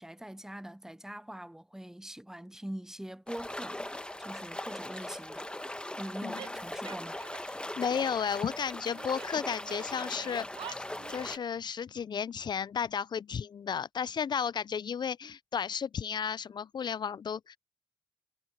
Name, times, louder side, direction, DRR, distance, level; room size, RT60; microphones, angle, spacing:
voice 1, 0.0-3.8 4.2-5.5 6.0-7.2, right 1 dB, 5° right, 0.9 m, -43 dB
sound 1, 3.3-11.4, left 1 dB, 10° left, 1.4 m, -40 dB
Female speech woman speaking / Yell, 6.3-7.5 7.8-9.3 9.6-11.5, right 10 dB, 75° right, 0.8 m, -48 dB
voice 2, 7.8-10.5 11.1-17.6, left 7 dB, 55° left, 0.5 m, -33 dB
supercardioid pair, 45°, 9 cm